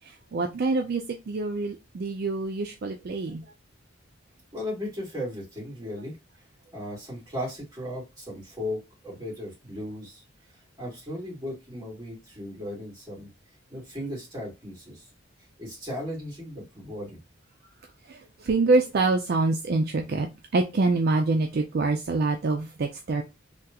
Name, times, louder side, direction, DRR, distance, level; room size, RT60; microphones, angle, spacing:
voice 1, 0.3-3.4 18.1-20.3 20.5-23.2, right 3 dB, 50° right, 3 dB, 0.4 m, -25 dB
voice 2, 4.5-6.2 6.7-10.2 10.8-13.3 13.7-15.1 15.6-17.2, left 1 dB, 20° right, -6 dB, 2.1 m, -36 dB
3.5 x 2.3 x 2.8 m, 0.25 s
head